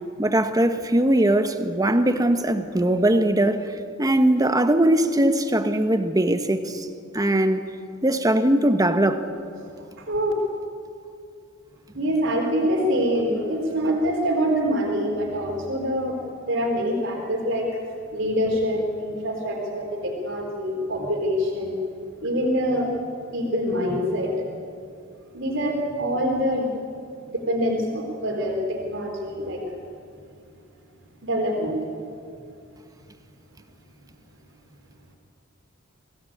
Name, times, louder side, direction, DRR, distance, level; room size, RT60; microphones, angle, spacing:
voice 1, 0.2-3.6 4.0-6.9 7.1-7.6 8.0-9.3, right 1 dB, 20° right, 1.2 m, -20 dB
voice 2, 10.0-10.3 11.9-16.2 16.5-17.7 18.1-21.8 22.2-22.9 23.3-24.5 25.3-26.8 27.3-29.6 31.2-31.8, equal, 65° right, 3.9 m, -25 dB
26.0 x 17.5 x 8.7 m
head